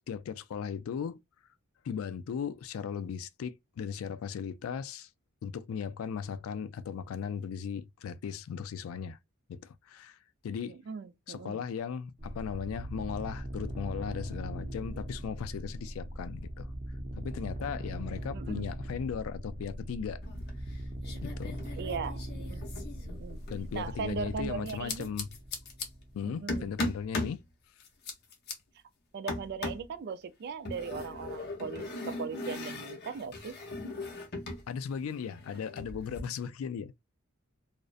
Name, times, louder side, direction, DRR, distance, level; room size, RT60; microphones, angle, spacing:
voice 1, 0.1-1.2 1.8-5.1 5.4-9.2 9.5-10.2 10.4-10.8 11.3-16.7 17.1-20.2 21.2-21.6 23.5-25.3 26.1-27.4 34.7-37.0, left 7 dB, 80° left, 0.3 m, -37 dB
voice 2, 10.7-11.6 18.3-18.7 21.8-22.7 23.1-23.4 23.7-25.1 26.3-26.7 29.1-33.6, right 5 dB, 50° right, 0.3 m, -39 dB
sound 1, 12.2-26.5, right 1 dB, 25° right, 0.7 m, -40 dB
sound 2, 20.2-20.8 21.0-23.7 24.7-25.9 26.5-27.4 27.8-28.5 29.3-29.9 30.7-34.7 34.9-36.2, left 2 dB, 50° left, 0.7 m, -38 dB
2.5 x 2.0 x 2.4 m
head